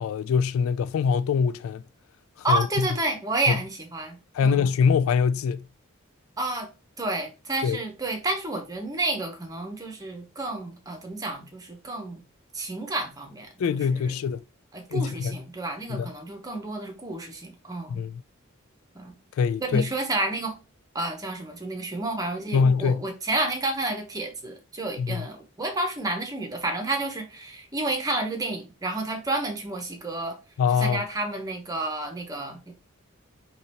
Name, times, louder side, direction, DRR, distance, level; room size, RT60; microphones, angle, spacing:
voice 1, 0.0-1.8 2.5-2.9 3.5-3.6 4.3-5.7 7.6-7.8 13.6-14.4 14.9-15.4 15.9-16.1 17.9-18.2 19.4-19.9 22.5-23.0 25.0-25.2 30.6-31.0, left 6 dB, 80° left, 0.3 m, -23 dB
voice 2, 2.4-4.2 4.4-4.7 6.4-6.7 7.0-12.2 12.5-13.5 13.9-14.1 14.7-18.0 18.9-19.2 19.6-20.6 20.9-30.4 30.8-32.7, right 2 dB, 20° right, 1.0 m, -30 dB
4.0 x 3.0 x 4.3 m
head